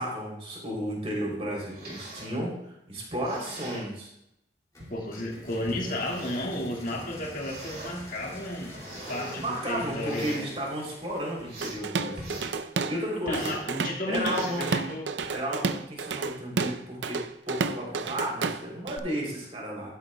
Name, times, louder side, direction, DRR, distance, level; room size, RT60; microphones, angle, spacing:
voice 1, 0.0-4.1 9.4-12.4 12.9-13.5 14.1-14.7 15.3-17.2 17.5-19.9, equal, 35° right, -3 dB, 3.1 m, -33 dB
sound 1, 1.5-2.4 3.1-3.9 4.8-4.9 5.7-6.5 7.2-7.9 8.4-9.4 9.9-10.5 11.0-11.8 12.2-12.5 13.3-13.7 14.2-14.7 15.2-15.5, right 1 dB, 55° right, 2.8 m, -43 dB
sound 2, 4.7-12.5, left 1 dB, 20° left, 2.3 m, -47 dB
voice 2, 4.9-8.7 9.1-10.5 13.2-15.2, left 1 dB, 45° left, -2 dB, 1.8 m, -33 dB
Drum kit / Drum, 11.6-13.0 13.3-19.0, right 4 dB, 80° right, 0.5 m, -31 dB
12.5 x 10.0 x 2.2 m, 0.81 s
head